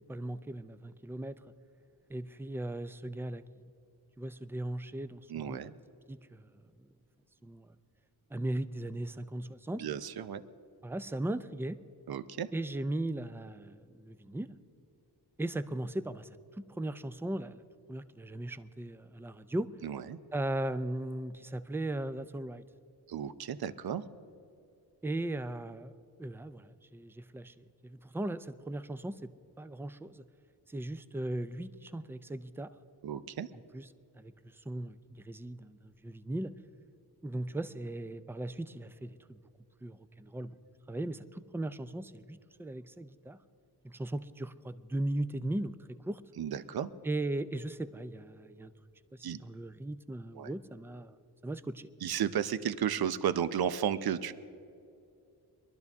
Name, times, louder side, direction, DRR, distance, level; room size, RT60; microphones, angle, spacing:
voice 1, 0.1-1.3 2.1-3.4 4.2-5.6 6.1-6.5 7.4-7.7 8.3-9.8 10.8-11.8 12.5-14.6 15.4-16.3 16.6-17.6 17.9-19.7 20.3-22.6 25.0-25.9 26.2-30.2 30.7-32.7 33.5-33.9 34.2-36.5 37.2-39.4 39.8-40.6 40.9-43.4 43.8-46.2 47.0-48.7 49.1-51.2 51.4-51.9, right 1 dB, 5° right, 13 dB, 0.4 m, -38 dB
voice 2, 5.3-5.7 9.7-10.4 12.1-12.5 19.8-20.2 23.1-24.0 33.0-33.5 46.4-46.9 49.2-49.4 50.3-50.5 52.0-54.3, right 9 dB, 65° right, 13 dB, 0.7 m, -33 dB
23.0 x 12.0 x 3.6 m, 2.5 s
wide cardioid pair, 115°, 40 cm